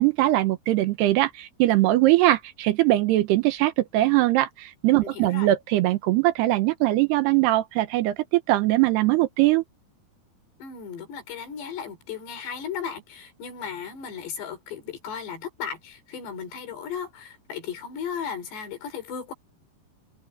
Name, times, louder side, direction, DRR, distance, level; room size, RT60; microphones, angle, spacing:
voice 1, 0.0-9.6, right 16 dB, 80° right, 2.9 m, -21 dB
voice 2, 5.0-5.5 10.6-19.3, left 7 dB, 75° left, 5.7 m, -35 dB
omnidirectional pair, 4.9 m